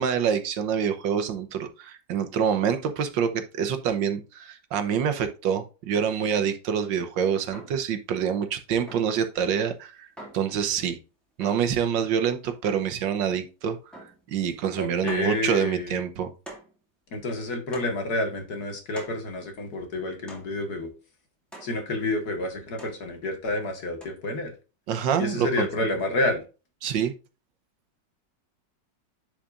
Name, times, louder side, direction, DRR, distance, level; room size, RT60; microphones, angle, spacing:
voice 1, 0.0-10.1 10.3-11.0 11.4-13.8 14.3-16.3 24.9-25.7 26.8-27.1, right 7 dB, 85° right, 9 dB, 1.7 m, -26 dB
sound 1, 7.5-7.9 8.9-9.2 10.2-10.5 11.4-11.8 12.6-13.0 13.9-14.3 14.6-14.7 15.1-15.3 16.5-16.8 17.7-18.1 19.0-19.3 20.3-20.6 21.5-21.8 22.8-23.1 24.0-24.1, right 1 dB, ahead, 2.4 m, -44 dB
voice 2, 14.8-16.0 17.1-20.9 21.6-24.5 25.2-26.4, left 2 dB, 60° left, 4 dB, 2.2 m, -29 dB
10.5 x 5.0 x 2.5 m, 0.31 s
omnidirectional pair, 1.9 m